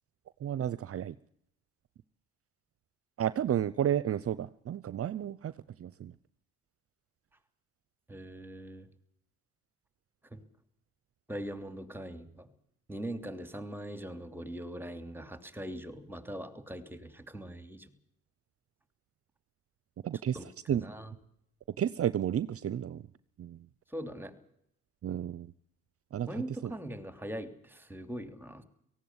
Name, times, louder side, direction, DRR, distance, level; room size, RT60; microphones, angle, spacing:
voice 1, 0.4-1.1 3.2-5.5 5.8-6.1 20.0-20.4 20.7-20.8 21.8-23.0 23.4-23.6 25.0-25.5 26.1-26.3 26.6-26.7, right 10 dB, 50° right, 17 dB, 0.7 m, -31 dB
voice 2, 8.1-8.9 10.3-10.4 11.3-12.5 12.9-17.9 20.3-21.1 23.9-24.3 26.3-28.6, right 1 dB, 5° right, 9 dB, 3.0 m, -41 dB
18.0 x 15.5 x 9.6 m, 0.73 s
cardioid pair, 90°, 30 cm